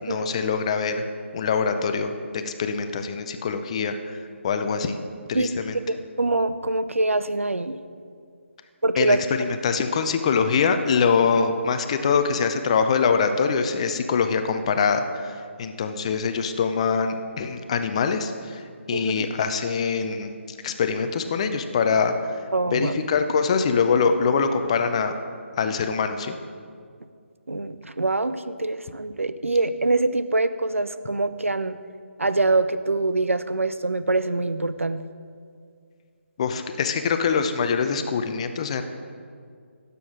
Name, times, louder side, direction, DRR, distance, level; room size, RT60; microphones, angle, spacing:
voice 1, 0.0-1.1 1.3-4.2 4.4-5.0 5.3-5.8 9.0-20.4 20.6-22.4 22.7-25.2 25.6-26.4 36.4-38.8, left 5 dB, 25° left, 8 dB, 0.5 m, -24 dB
voice 2, 5.9-7.8 8.8-9.5 18.9-19.3 22.5-22.9 27.5-31.8 32.2-35.0, right 2 dB, 80° right, 13 dB, 0.5 m, -24 dB
16.0 x 6.9 x 3.7 m, 2.2 s
figure-of-eight pair, 150°, 7 cm